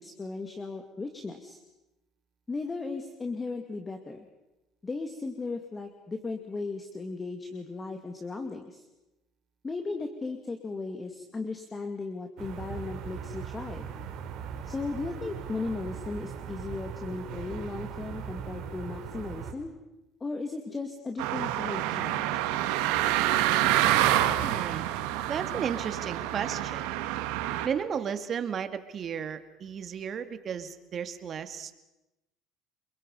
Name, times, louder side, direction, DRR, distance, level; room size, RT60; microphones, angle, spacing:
voice 1, 0.0-1.6 2.5-4.3 4.8-8.8 9.6-13.9 14.6-19.7 20.2-22.4, left 3 dB, 20° left, 5 dB, 2.3 m, -36 dB
sound 1, 12.4-19.5, right 7 dB, 65° right, 3.4 m, -39 dB
sound 2, 21.2-27.7, right 13 dB, 85° right, 1.7 m, -27 dB
voice 2, 24.4-24.9 25.3-27.0 27.6-31.7, right 7 dB, 40° right, 10 dB, 2.1 m, -34 dB
30.0 x 22.5 x 5.5 m, 0.98 s
supercardioid pair, 105°, 0 cm